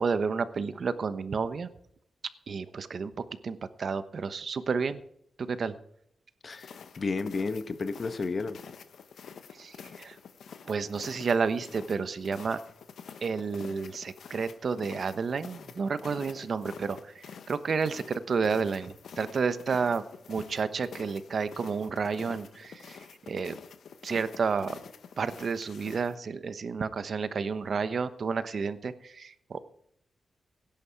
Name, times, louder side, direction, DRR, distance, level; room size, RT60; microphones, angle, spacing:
voice 1, 0.0-1.7 2.5-5.0 5.4-5.7 9.5-10.2 10.6-12.6 13.2-23.6 24.0-24.8 25.2-29.6, right 5 dB, 55° right, 13 dB, 1.0 m, -31 dB
voice 2, 6.4-8.6, left 4 dB, 45° left, 11 dB, 1.1 m, -32 dB
sound 1, 6.5-26.2, left 6 dB, 80° left, 1.3 m, -48 dB
17.0 x 10.5 x 4.7 m, 0.72 s
cardioid pair, 100°, 0 cm